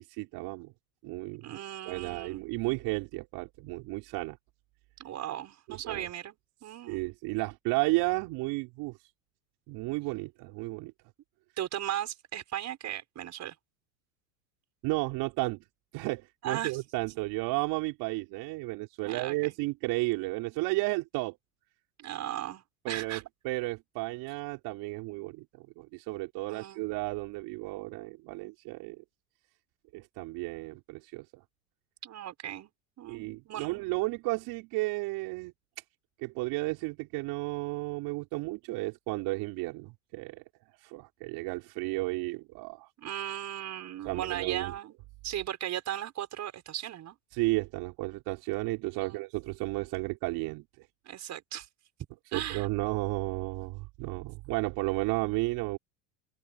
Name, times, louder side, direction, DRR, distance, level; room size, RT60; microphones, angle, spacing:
voice 1, 0.1-0.7 1.0-4.4 5.7-6.1 6.9-9.0 9.7-10.9 14.8-15.6 15.9-21.4 22.8-29.0 29.9-31.4 33.1-35.5 36.2-40.4 40.8-42.9 44.0-44.7 47.3-50.9 52.3-55.8, right 23 dB, 60° right, 5.3 m, -33 dB
voice 2, 1.4-2.5 5.0-6.4 6.6-7.0 11.6-13.5 16.4-16.8 19.0-19.5 22.0-23.2 26.5-26.8 32.0-32.7 33.0-33.8 43.0-44.9 45.2-47.2 49.0-49.2 51.0-51.7 52.3-52.7, right 11 dB, 40° right, 6.7 m, -37 dB
open air
supercardioid pair, 105°, 43 cm